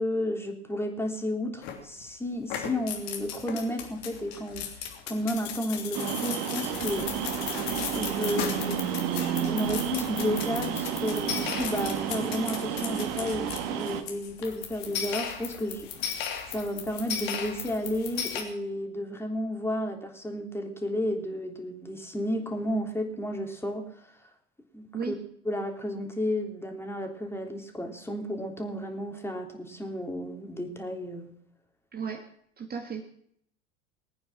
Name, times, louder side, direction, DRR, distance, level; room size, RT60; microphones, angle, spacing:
voice 1, 0.0-4.7 5.1-7.4 7.9-8.8 9.3-15.9 16.5-24.1 24.7-25.1 25.4-31.3, equal, 5° left, 3 dB, 3.3 m, -32 dB
sound 1, 1.6-2.1 2.4-18.4, left 8 dB, 60° left, 3.1 m, -36 dB
sound 2, 5.9-14.0, right 9 dB, 55° right, 2.0 m, -31 dB
voice 2, 31.9-32.2 32.6-33.0, right 6 dB, 25° right, 4 dB, 1.9 m, -34 dB
21.5 x 9.4 x 6.2 m, 0.67 s
figure-of-eight pair, 75°, 35 cm